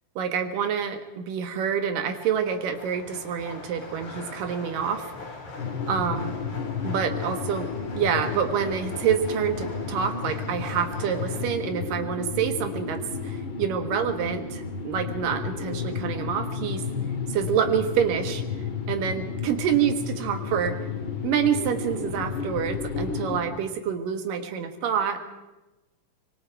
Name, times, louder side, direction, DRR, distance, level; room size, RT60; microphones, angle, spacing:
voice 1, 0.2-5.1 5.9-6.3 6.8-7.7 7.9-16.8 17.3-18.4 18.9-20.8 21.2-25.2, right 8 dB, 80° right, 7 dB, 3.1 m, -27 dB
sound 1, 2.1-11.4, left 3 dB, 65° left, 5.1 m, -41 dB
sound 2, 5.6-23.4, left 5 dB, 45° left, 2.3 m, -32 dB
25.0 x 22.0 x 4.7 m, 1.1 s
omnidirectional pair, 3.8 m